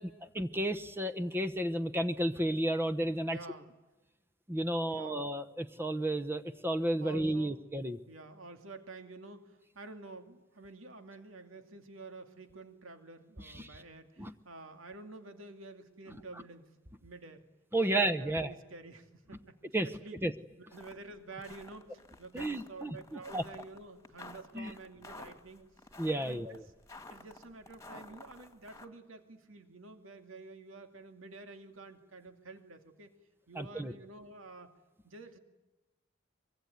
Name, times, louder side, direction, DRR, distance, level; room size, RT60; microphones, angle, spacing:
voice 1, 0.0-3.4 4.5-8.0 13.4-13.8 14.2-14.3 17.7-18.5 19.7-19.9 20.2-20.3 22.3-23.0 23.3-23.4 24.5-24.7 26.0-26.6 33.5-33.9, right 1 dB, 10° right, 10 dB, 0.9 m, -32 dB
voice 2, 3.2-3.7 4.8-5.2 7.0-7.6 8.1-16.7 17.0-17.4 17.9-19.5 19.8-20.2 20.6-25.6 26.2-26.7 27.1-33.1 33.5-34.7 35.0-35.4, right 3 dB, 80° right, 7 dB, 2.5 m, -49 dB
sound 1, 20.7-21.0 21.3-28.9, left 2 dB, 15° left, 2.2 m, -51 dB
24.5 x 23.5 x 9.4 m, 1.1 s
head